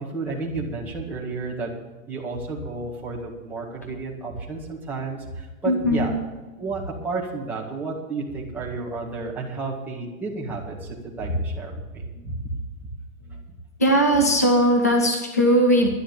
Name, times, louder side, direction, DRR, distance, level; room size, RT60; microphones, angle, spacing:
voice 1, 0.0-1.7 2.1-6.2 6.6-12.5 12.8-12.9, right 3 dB, 5° right, -5 dB, 1.9 m, -31 dB
voice 2, 5.7-6.1 13.8-15.9, equal, 15° left, 3 dB, 0.4 m, -19 dB
11.5 x 11.0 x 7.1 m, 1.2 s
hypercardioid pair, 170°, 42 cm